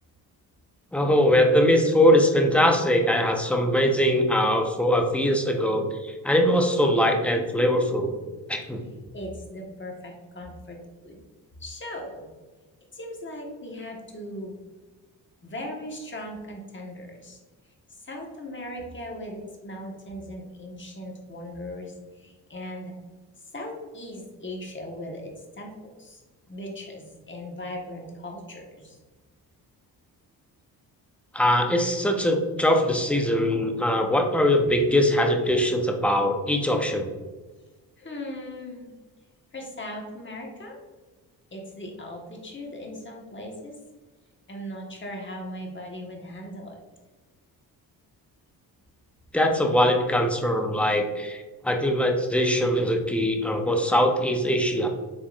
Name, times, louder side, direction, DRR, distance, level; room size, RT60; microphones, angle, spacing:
voice 1, 0.9-8.2 8.5-8.8 31.3-37.1 49.3-54.9, equal, 5° left, 3 dB, 0.7 m, -22 dB
voice 2, 9.1-10.8 11.0-11.2 11.6-12.3 12.9-14.5 15.4-17.4 18.0-22.9 23.5-26.2 26.5-29.0 38.0-38.9 39.5-40.8 41.5-43.7 44.5-46.8, left 1 dB, 25° left, 0 dB, 1.3 m, -38 dB
5.2 x 3.5 x 2.5 m, 1.3 s
supercardioid pair, 60°, 42 cm